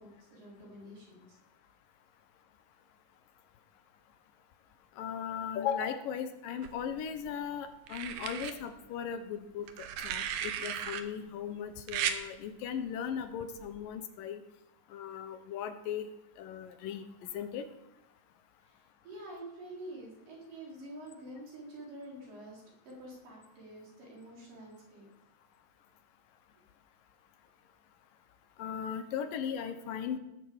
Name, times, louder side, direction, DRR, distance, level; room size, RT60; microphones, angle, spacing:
voice 1, 0.0-1.4 18.6-18.7 19.0-25.1, right 1 dB, 65° right, -4 dB, 6.0 m, -47 dB
voice 2, 5.0-9.7 10.0-14.4 14.9-16.1 16.4-17.1 17.3-17.6 28.6-30.2, left 8 dB, 75° left, 9 dB, 2.5 m, -37 dB
sound 1, 6.6-7.3 7.9-8.5 9.7-11.0 11.9-12.2 13.6-13.8, right 9 dB, 80° right, 2.8 m, -35 dB
18.0 x 9.2 x 7.1 m, 0.92 s
omnidirectional pair, 4.1 m